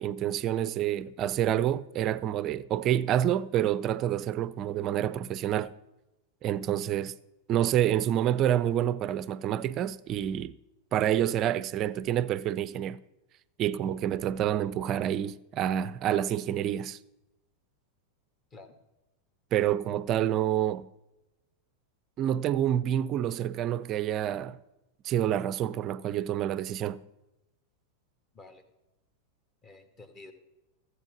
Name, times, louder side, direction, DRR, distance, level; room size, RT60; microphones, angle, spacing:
voice 1, 0.0-5.7 6.4-7.1 7.5-10.6 10.9-13.0 13.6-17.0 19.5-20.9 22.2-24.6 25.0-27.0, right 11 dB, 35° right, 0.5 m, -28 dB
voice 2, 29.6-30.3, left 3 dB, 25° left, 1.6 m, -50 dB
14.5 x 8.0 x 6.1 m
figure-of-eight pair, 90°, 0 cm